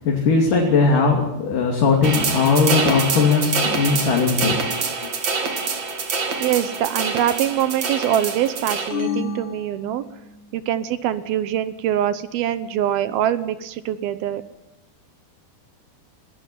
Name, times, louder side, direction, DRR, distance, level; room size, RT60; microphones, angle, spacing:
voice 1, 0.0-4.6, left 4 dB, 55° left, 1 dB, 4.1 m, -19 dB
sound 1, 2.0-8.9, right 4 dB, 40° right, 3.3 m, -25 dB
voice 2, 6.4-10.0 10.5-14.4, right 11 dB, 70° right, 13 dB, 2.6 m, -23 dB
sound 2, 8.9-10.6, left 6 dB, 75° left, 4.1 m, -30 dB
20.0 x 19.5 x 9.4 m, 0.89 s
omnidirectional pair, 4.9 m